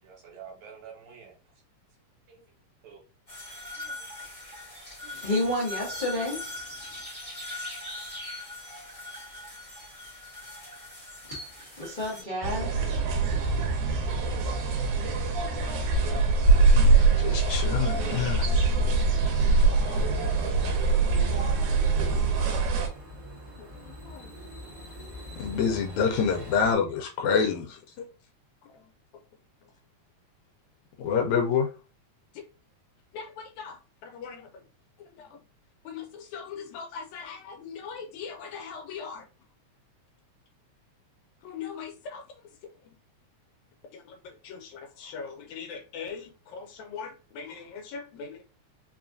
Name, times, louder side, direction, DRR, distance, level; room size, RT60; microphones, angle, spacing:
voice 1, 0.0-1.4 2.3-2.4 2.8-3.0 3.8-4.1 5.0-5.3, right 7 dB, 75° right, 2.5 m, -48 dB
sound 1, 3.3-12.2, left 1 dB, 20° left, 0.9 m, -41 dB
voice 2, 5.1-6.5 11.8-13.0, left 1 dB, 55° left, 0.5 m, -30 dB
sound 2, 12.4-22.9, right 3 dB, 90° right, 2.3 m, -23 dB
voice 3, 16.8-18.7 19.9-20.0 23.6-24.3 25.4-28.1 31.0-31.7 33.1-33.8 34.0-34.5 35.2-35.3 35.9-39.2 41.4-42.2 44.2-48.4, left 6 dB, 90° left, 2.0 m, -31 dB
sound 3, 18.5-26.7, left 1 dB, 45° right, 1.0 m, -44 dB
5.0 x 2.4 x 2.5 m
omnidirectional pair, 3.3 m